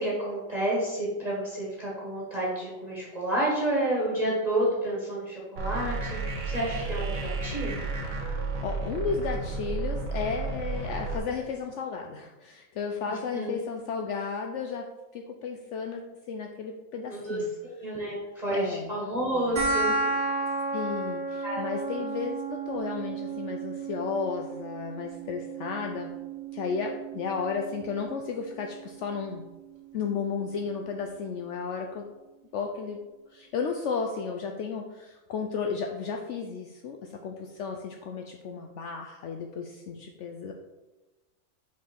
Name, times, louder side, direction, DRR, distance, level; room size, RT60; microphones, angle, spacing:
voice 1, 0.0-7.8 13.1-13.5 17.1-20.4 21.4-21.6, right 1 dB, 30° right, -6 dB, 1.6 m, -30 dB
sound 1, 5.6-11.2, right 3 dB, 80° right, 1.4 m, -32 dB
voice 2, 8.6-17.5 18.5-19.0 20.7-26.1 26.5-29.4 29.9-32.1 32.5-33.0 33.3-40.5, left 5 dB, 70° left, 3 dB, 0.8 m, -33 dB
sound 2, 19.6-30.5, right 3 dB, 45° right, 1.5 m, -34 dB
5.6 x 4.8 x 4.5 m, 1.1 s
omnidirectional pair, 1.4 m